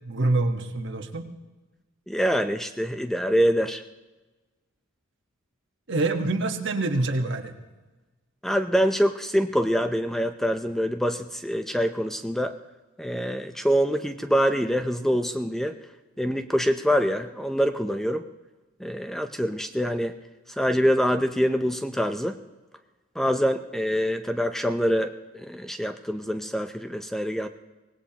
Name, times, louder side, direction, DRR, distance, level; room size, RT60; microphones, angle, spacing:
voice 1, 0.0-1.3 5.9-7.5, right 2 dB, 60° right, 5 dB, 1.3 m, -26 dB
voice 2, 2.1-3.8 8.4-12.5 13.0-15.8 16.2-18.3 18.8-20.1 20.6-22.4 23.2-27.5, equal, ahead, 7 dB, 0.5 m, -25 dB
24.5 x 18.5 x 2.9 m, 1.2 s
head